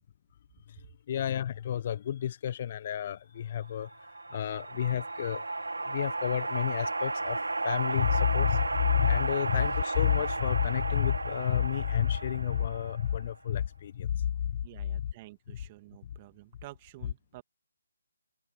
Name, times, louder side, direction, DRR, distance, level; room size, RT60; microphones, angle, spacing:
voice 1, 0.7-5.5 5.8-15.0 16.0-16.1, left 9 dB, 35° left, 1.0 m, -30 dB
sound 1, 3.8-13.3, right 2 dB, 75° right, 2.6 m, -34 dB
voice 2, 14.6-17.4, right 18 dB, 25° right, 2.5 m, -50 dB
figure-of-eight pair, 150°, 0 cm